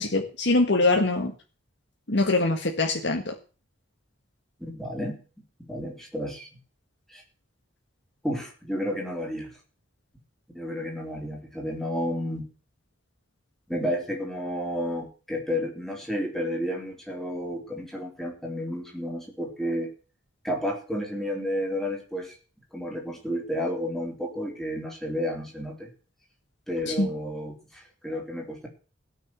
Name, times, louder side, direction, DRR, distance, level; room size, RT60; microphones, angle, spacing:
voice 1, 0.0-1.3 2.1-3.3 27.0-27.1, left 2 dB, 65° left, 2 dB, 1.8 m, -23 dB
voice 2, 4.6-5.2 5.6-6.5 7.1-7.2 8.2-9.6 10.5-12.5 13.7-19.9 20.4-22.3 22.7-25.9 26.7-28.7, equal, ahead, 0 dB, 3.7 m, -31 dB
17.0 x 6.4 x 7.7 m, 0.37 s
head